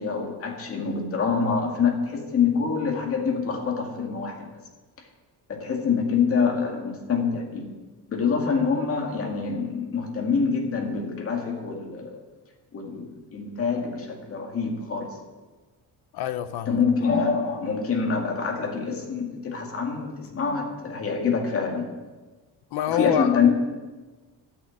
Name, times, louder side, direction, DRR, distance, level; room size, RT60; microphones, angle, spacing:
voice 1, 0.0-4.4 5.5-7.7 8.1-12.2 12.7-15.2 16.7-21.9 22.9-23.5, left 5 dB, 35° left, 1 dB, 2.1 m, -25 dB
voice 2, 16.1-16.8 22.7-23.4, left 11 dB, 70° left, 12 dB, 0.9 m, -26 dB
13.0 x 6.5 x 9.3 m, 1.3 s
cardioid pair, 180°, 40 cm